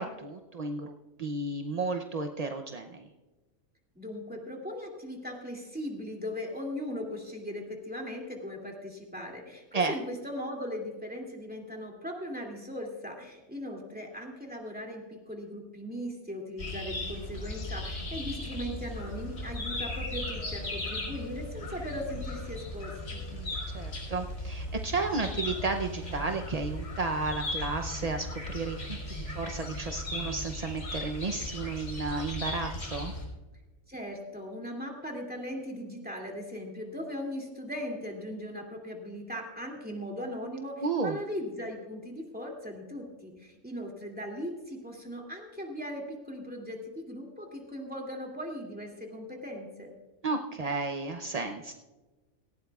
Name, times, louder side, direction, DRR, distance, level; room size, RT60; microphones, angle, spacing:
voice 1, 0.0-3.1 9.7-9.9 23.3-33.1 40.8-41.2 50.2-51.7, right 3 dB, 45° right, 4 dB, 0.5 m, -33 dB
voice 2, 3.9-23.2 33.9-49.9, equal, 5° right, 0 dB, 2.4 m, -39 dB
sound 1, 16.6-33.2, left 1 dB, 50° left, 5.2 m, -37 dB
18.0 x 16.5 x 2.4 m, 1.2 s
omnidirectional pair, 1.5 m